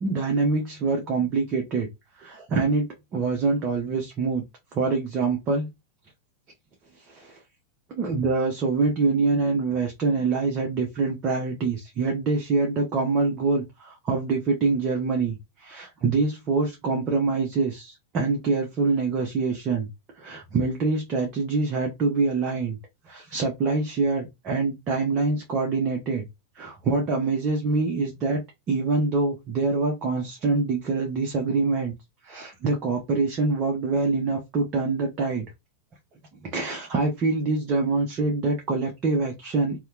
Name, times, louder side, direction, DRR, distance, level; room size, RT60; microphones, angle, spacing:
voice 1, 0.0-1.9 2.2-4.4 4.7-5.7 7.1-7.4 8.0-19.9 20.1-22.8 23.1-26.3 26.6-31.9 32.2-35.5 36.4-39.8, right 3 dB, 30° right, 0.6 m, -25 dB
2.8 x 2.1 x 2.4 m
figure-of-eight pair, 90°, 0 cm